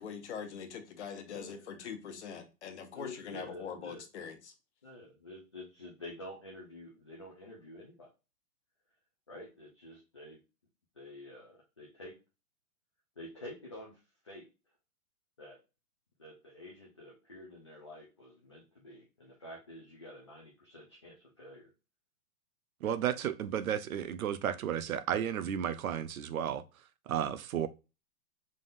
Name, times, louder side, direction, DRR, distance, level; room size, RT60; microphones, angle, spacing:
voice 1, 0.0-4.5, left 6 dB, 45° left, 1.1 m, -43 dB
voice 2, 2.9-4.0 4.8-8.1 9.3-10.4 11.0-12.1 13.2-14.0 14.2-14.5 15.4-15.6 16.2-21.7, left 1 dB, 20° left, 0.4 m, -49 dB
voice 3, 22.8-26.6 27.1-27.7, right 9 dB, 60° right, 0.6 m, -33 dB
5.3 x 3.7 x 2.5 m
hypercardioid pair, 170°, 47 cm